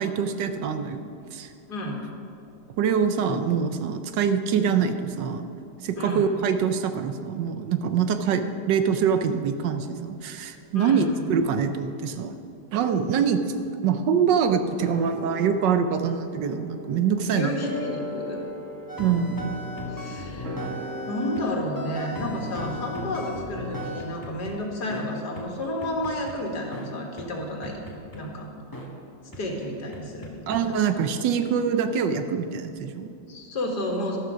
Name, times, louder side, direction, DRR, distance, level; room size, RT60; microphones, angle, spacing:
voice 1, 0.0-1.5 2.8-5.5 5.8-12.4 12.7-13.4 13.8-17.5 19.0-19.5 30.5-33.1, right 7 dB, 75° right, 8 dB, 1.3 m, -24 dB
voice 2, 1.7-2.0 6.0-6.3 10.7-11.1 17.2-18.4 19.9-20.5 21.1-27.8 28.1-28.5 29.4-30.7 33.3-34.2, left 1 dB, 60° left, 0 dB, 2.2 m, -31 dB
sound 1, 14.8-25.4 25.7-25.8, equal, 45° right, 1.7 m, -40 dB
sound 2, 18.9-21.5 21.7-24.5 24.9-25.0 25.3-25.4 25.8-26.3 26.7-26.9 27.2-27.3 27.6-28.2 28.7-28.9 29.3-29.4 29.9-30.6, left 1 dB, 10° left, 1.3 m, -36 dB
12.5 x 12.0 x 5.1 m, 2.7 s
omnidirectional pair, 2.0 m